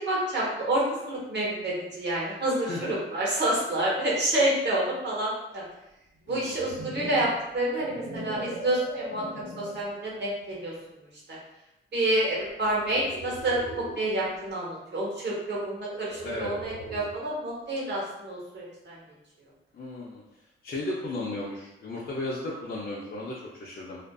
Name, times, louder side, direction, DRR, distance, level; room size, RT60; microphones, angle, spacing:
voice 1, 0.0-5.6 6.3-9.2 9.6-10.7 11.3-11.4 11.9-13.6 14.0-19.0, right 1 dB, 55° right, -5 dB, 1.0 m, -28 dB
sound 1, 6.2-9.9 10.5-10.8 12.6-14.1 15.8-17.2, right 1 dB, 85° right, 0.9 m, -40 dB
voice 2, 19.7-20.2 20.6-24.0, left 2 dB, 45° left, -5 dB, 0.4 m, -34 dB
2.5 x 2.4 x 2.2 m, 0.92 s
cardioid pair, 95°, 21 cm